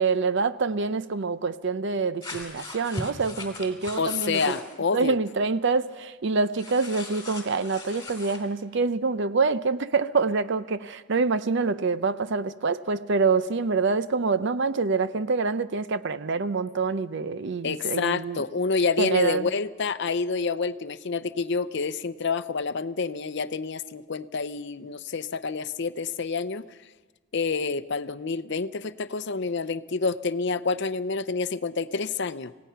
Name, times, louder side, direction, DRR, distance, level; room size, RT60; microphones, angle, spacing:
voice 1, 0.0-4.5 4.9-18.4 19.0-19.5, right 4 dB, 60° right, 14 dB, 0.6 m, -26 dB
sound 1, 2.2-4.7 6.6-8.4, left 2 dB, 15° left, 3.1 m, -39 dB
voice 2, 4.0-5.2 17.6-26.6 27.3-32.5, left 4 dB, 55° left, 14 dB, 0.6 m, -28 dB
27.0 x 17.5 x 5.7 m, 1.3 s
head